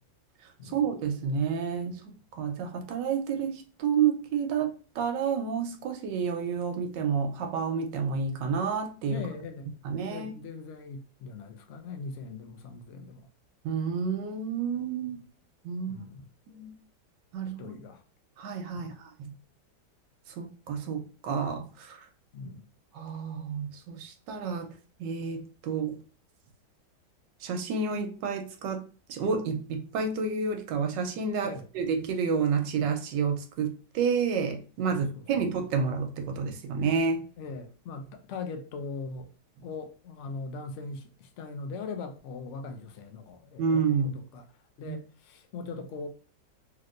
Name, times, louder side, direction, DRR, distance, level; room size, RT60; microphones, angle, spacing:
voice 1, 0.6-9.3 9.8-10.3 13.6-15.2 15.6-16.1 16.5-16.7 17.3-17.8 18.4-19.3 20.3-22.1 22.9-24.7 25.0-26.0 27.4-28.8 29.1-37.3 43.6-44.2 44.9-45.0, right 6 dB, 85° right, 1.3 m, -30 dB
voice 2, 9.1-9.7 10.0-13.3 15.9-16.3 17.6-18.0 18.7-19.0 22.3-22.6 31.4-31.6 34.9-35.2 37.4-39.3 39.6-43.6 44.3-44.4 44.8-46.1, left 4 dB, 80° left, 0.6 m, -40 dB
3.2 x 2.8 x 2.4 m
omnidirectional pair, 1.9 m